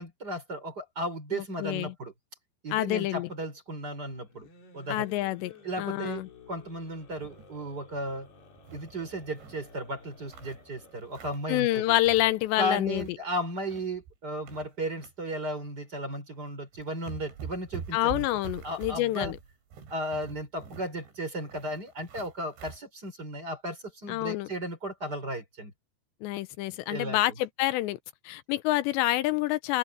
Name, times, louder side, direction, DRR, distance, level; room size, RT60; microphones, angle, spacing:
voice 1, 0.0-2.1 2.6-4.5 4.7-5.2 5.6-6.2 6.5-8.3 8.7-12.0 12.6-18.3 18.6-19.3 19.9-25.7 26.9-27.2, right 1 dB, 20° right, 4.6 m, -35 dB
voice 2, 1.3-1.9 2.7-3.3 4.9-6.3 11.5-13.0 17.9-19.4 24.1-24.5 26.2-28.0 28.3-29.8, left 16 dB, 85° left, 2.9 m, -27 dB
sound 1, 4.2-13.0, left 5 dB, 65° left, 6.5 m, -53 dB
sound 2, 7.1-7.6 8.0-8.1 8.4-9.7 10.1-11.5 11.9-12.5 12.7-13.2 13.5-15.1 15.5-15.7 16.4-16.5 16.7-22.8, right 6 dB, 90° right, 6.1 m, -45 dB
omnidirectional pair, 5.1 m